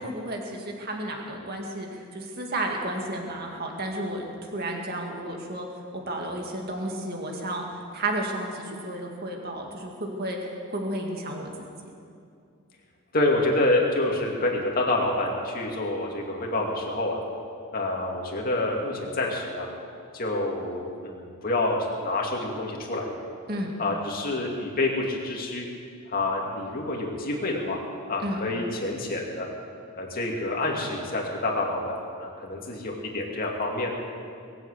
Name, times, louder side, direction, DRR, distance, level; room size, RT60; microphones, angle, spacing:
voice 1, 0.0-4.2 4.5-5.7 5.9-7.7 7.9-10.4 10.7-11.5 23.5-23.7 28.2-28.4, right 1 dB, 45° right, 1 dB, 2.1 m, -32 dB
voice 2, 13.1-17.2 17.7-19.7 20.1-23.1 23.8-25.7 26.1-27.8 28.1-29.5 30.0-33.9, left 2 dB, 40° left, -1 dB, 2.5 m, -27 dB
21.5 x 7.9 x 8.3 m, 2.4 s
head